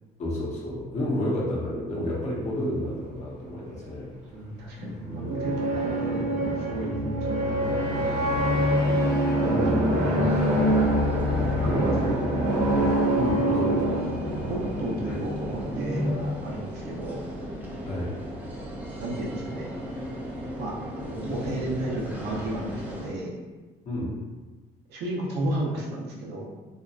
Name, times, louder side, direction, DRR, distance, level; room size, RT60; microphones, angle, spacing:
voice 1, 0.2-4.1 8.9-9.2 9.5-9.9 11.6-11.7 13.1-13.9 17.8-18.2 23.9-24.2, left 1 dB, 45° left, -6 dB, 0.8 m, -30 dB
voice 2, 4.3-8.9 9.4-10.3 11.2-12.6 13.4-13.7 14.5-17.2 19.0-19.7 20.6-23.3 24.9-26.5, right 1 dB, 75° right, -3 dB, 0.7 m, -33 dB
sound 1, 4.5-16.1, equal, 40° right, 1.1 m, -25 dB
sound 2, 8.3-14.8, equal, 75° left, 1.1 m, -38 dB
sound 3, 10.2-23.1, equal, 10° right, 0.5 m, -37 dB
2.8 x 2.2 x 2.4 m, 1.3 s
cardioid pair, 110°, 17 cm